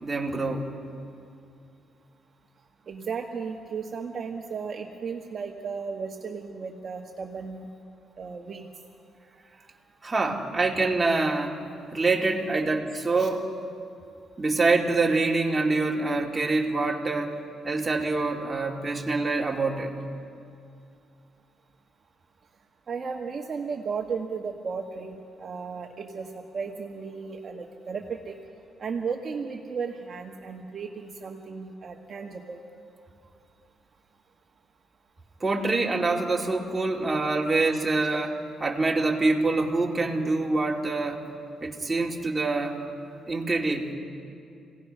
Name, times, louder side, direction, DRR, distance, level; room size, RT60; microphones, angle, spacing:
voice 1, 0.0-0.7 10.0-11.6 11.9-13.5 14.4-17.4 17.6-19.9 35.4-41.2 41.6-42.8 43.3-43.9, right 3 dB, 20° right, -1 dB, 2.5 m, -25 dB
voice 2, 2.9-7.7 8.2-8.7 13.2-13.3 22.9-28.4 28.8-32.6, right 5 dB, 45° right, 2 dB, 1.3 m, -35 dB
28.0 x 17.5 x 5.6 m, 2.5 s
cardioid pair, 90°, 0 cm